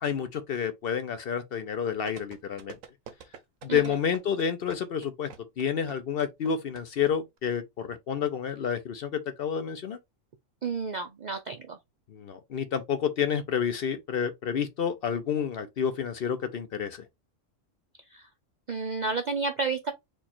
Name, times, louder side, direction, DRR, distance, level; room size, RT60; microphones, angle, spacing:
voice 1, 0.0-2.8 3.6-5.3 5.6-10.0 12.1-17.0, left 7 dB, 60° left, 0.7 m, -29 dB
sound 1, 2.1-7.1 7.4-7.5, right 7 dB, 85° right, 1.1 m, -45 dB
voice 2, 10.6-11.8 18.1-18.3 18.7-19.9, right 4 dB, 60° right, 0.4 m, -31 dB
4.5 x 2.3 x 4.2 m
omnidirectional pair, 1.3 m